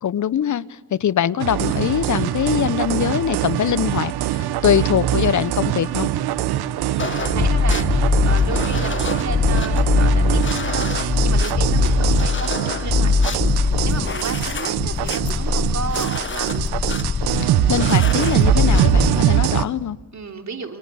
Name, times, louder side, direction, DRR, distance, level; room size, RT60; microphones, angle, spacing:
voice 1, 0.0-6.1 17.4-20.0, left 9 dB, 45° left, 1.1 m, -22 dB
sound 1, 1.4-19.6, right 13 dB, 65° right, 1.2 m, -23 dB
voice 2, 6.8-16.7 20.1-20.8, right 5 dB, 40° right, 3.4 m, -33 dB
sound 2, 7.0-19.1, left 4 dB, 30° left, 1.4 m, -21 dB
29.0 x 27.5 x 7.1 m
hypercardioid pair, 50°, 40 cm